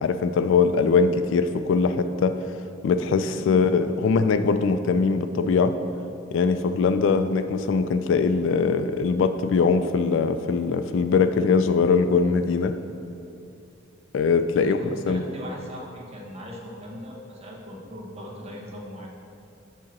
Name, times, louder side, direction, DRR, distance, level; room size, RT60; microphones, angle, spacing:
voice 1, 0.0-2.4 2.8-5.7 6.3-12.8 14.1-14.8 15.1-15.2, left 5 dB, 70° left, 10 dB, 0.3 m, -21 dB
voice 2, 14.5-19.1, equal, 35° right, -3 dB, 1.0 m, -39 dB
7.4 x 2.9 x 5.9 m, 2.7 s
head